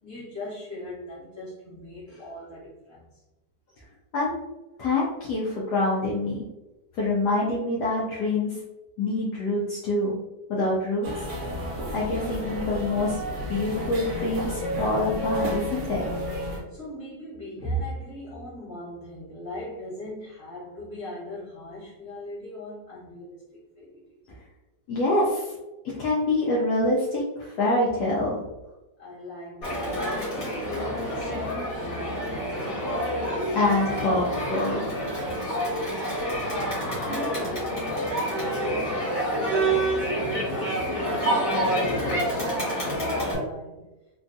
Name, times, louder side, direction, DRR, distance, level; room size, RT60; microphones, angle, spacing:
voice 1, 0.0-3.2 4.7-4.8 16.7-24.2 29.0-32.8 36.9-40.2 40.5-43.8, equal, 15° left, -11 dB, 0.7 m, -39 dB
voice 2, 4.8-6.4 6.9-8.6 9.0-10.2 10.5-11.1 11.9-13.2 13.5-16.0 24.9-25.5 25.9-28.5 33.5-34.9, left 2 dB, 75° left, -5 dB, 1.1 m, -25 dB
sound 1, 11.0-16.6, equal, 55° right, 1.0 m, -31 dB
Crowd, 29.6-43.3, right 1 dB, 55° left, 1.7 m, -27 dB
3.4 x 2.3 x 2.6 m, 1.0 s
omnidirectional pair, 1.8 m